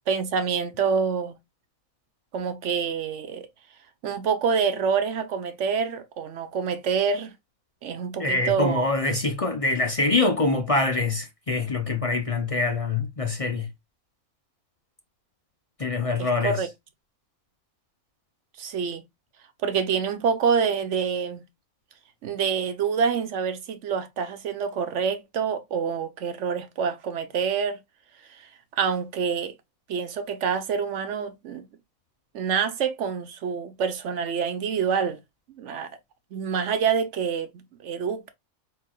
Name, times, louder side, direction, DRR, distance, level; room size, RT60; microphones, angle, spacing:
voice 1, 0.1-1.3 2.3-3.5 4.0-7.3 7.8-8.9 16.2-16.7 18.6-19.0 19.6-21.4 22.2-27.8 28.7-29.5 29.9-31.7 32.3-35.2 35.6-35.9 36.3-38.3, right 6 dB, 60° right, 1.1 m, -26 dB
voice 2, 8.2-13.7 15.8-16.6, left 3 dB, 40° left, 0.5 m, -24 dB
4.4 x 3.7 x 2.3 m
omnidirectional pair, 1.5 m